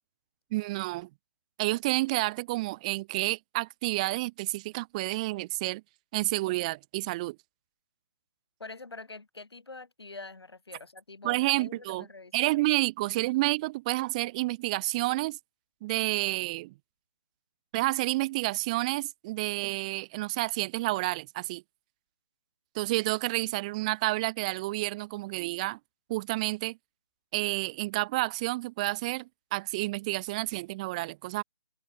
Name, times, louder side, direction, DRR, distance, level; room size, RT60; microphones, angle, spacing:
voice 1, 0.5-1.1 1.6-5.8 6.1-7.4 11.2-12.1 12.3-15.4 15.8-16.7 17.7-21.6 22.7-25.8 26.1-26.8 27.3-31.4, right 20 dB, 15° right, 0.6 m, -30 dB
voice 2, 8.6-12.3, left 3 dB, 70° left, 2.4 m, -45 dB
figure-of-eight pair, 145°, 14 cm